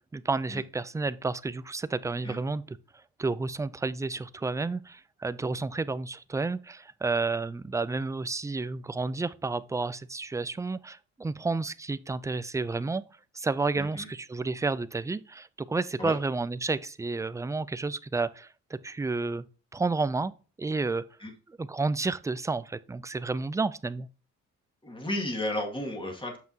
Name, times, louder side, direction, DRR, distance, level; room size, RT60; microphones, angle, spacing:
voice 1, 0.1-2.6 3.2-13.0 13.4-19.4 19.7-20.3 20.6-21.0 21.6-24.1, right 3 dB, 10° right, 0.3 m, -31 dB
voice 2, 13.7-14.1 16.0-16.2 21.2-21.3 24.8-26.4, left 1 dB, 15° left, 2.0 m, -33 dB
7.4 x 5.8 x 2.8 m
cardioid pair, 90°, 30 cm